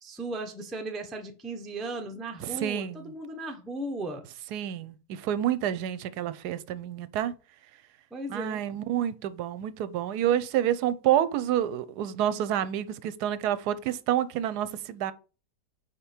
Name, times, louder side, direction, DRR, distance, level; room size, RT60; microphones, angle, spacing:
voice 1, 0.0-4.2 8.1-8.6, right 2 dB, ahead, 0.4 m, -36 dB
voice 2, 2.4-3.1 4.5-7.3 8.3-15.1, right 11 dB, 75° right, 1.1 m, -28 dB
5.1 x 4.6 x 4.3 m
omnidirectional pair, 1.8 m